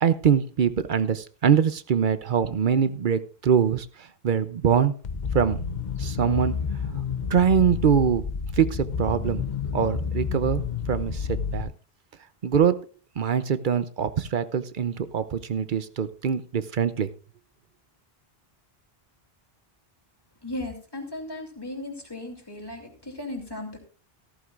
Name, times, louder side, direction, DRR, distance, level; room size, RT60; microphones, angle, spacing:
voice 1, 0.0-3.9 4.2-4.9 5.3-5.6 6.0-6.6 7.3-8.2 8.6-9.4 9.7-10.6 10.9-11.7 12.4-12.9 13.2-17.1, right 7 dB, 55° right, 13 dB, 0.8 m, -23 dB
sound 1, 5.0-11.6, left 6 dB, 50° left, 0.9 m, -30 dB
voice 2, 20.4-23.8, left 2 dB, 25° left, 2 dB, 2.8 m, -36 dB
14.5 x 14.0 x 2.4 m, 0.36 s
omnidirectional pair, 1.0 m